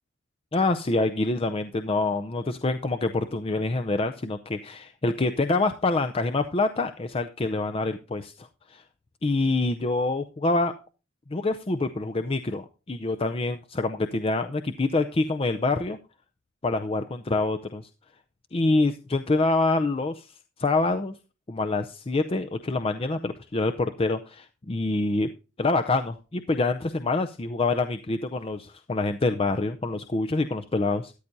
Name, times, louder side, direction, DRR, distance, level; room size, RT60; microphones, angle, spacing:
voice 1, 0.5-8.8 9.2-10.7 11.3-16.0 16.6-17.8 18.5-20.3 20.6-21.1 21.5-25.3 25.6-31.1, left 2 dB, 30° left, 7 dB, 0.5 m, -26 dB
13.0 x 11.0 x 2.7 m, 0.32 s
head